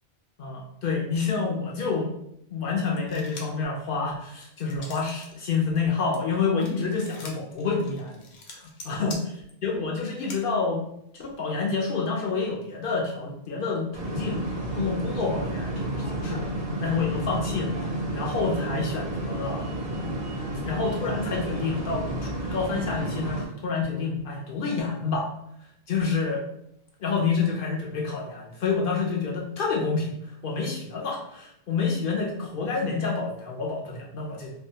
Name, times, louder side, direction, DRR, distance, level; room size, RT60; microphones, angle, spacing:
voice 1, 0.4-2.1 2.5-8.2 8.5-9.2 9.6-10.8 11.1-16.4 16.8-17.7 18.1-19.7 20.0-20.3 20.6-22.0 22.5-25.3 25.9-26.4 27.0-30.1 30.4-34.5, left 4 dB, 60° left, -2 dB, 0.6 m, -28 dB
sound 1, 3.0-3.7 4.1-5.3 5.7-10.4, left 3 dB, 85° left, 1.0 m, -44 dB
sound 2, 13.9-23.5, right 1 dB, 55° right, 0.5 m, -31 dB
2.6 x 2.2 x 2.7 m, 0.75 s
omnidirectional pair, 1.2 m